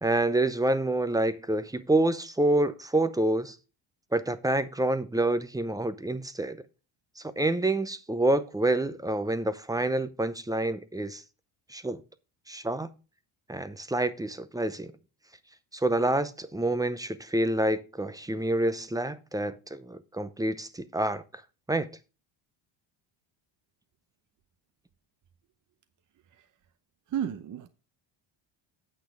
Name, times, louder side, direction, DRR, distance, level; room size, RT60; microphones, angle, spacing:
voice 1, 0.0-3.6 4.1-6.6 7.2-11.2 11.7-12.0 12.5-12.9 13.5-14.9 15.7-21.2 21.7-21.9, right 1 dB, 10° right, 0.6 m, -27 dB
voice 2, 27.1-27.7, right 9 dB, 40° right, 0.7 m, -32 dB
8.6 x 5.9 x 4.7 m
cardioid pair, 105°, 46 cm